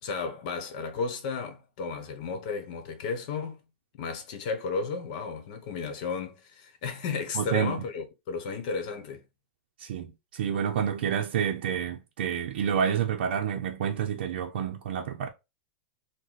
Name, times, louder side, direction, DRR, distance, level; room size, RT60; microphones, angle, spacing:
voice 1, 0.0-3.6 4.0-9.2, left 5 dB, 45° left, 0.9 m, -33 dB
voice 2, 7.3-7.8 9.8-15.3, right 8 dB, 70° right, 0.5 m, -29 dB
4.0 x 2.1 x 4.5 m
supercardioid pair, 165°, 6 cm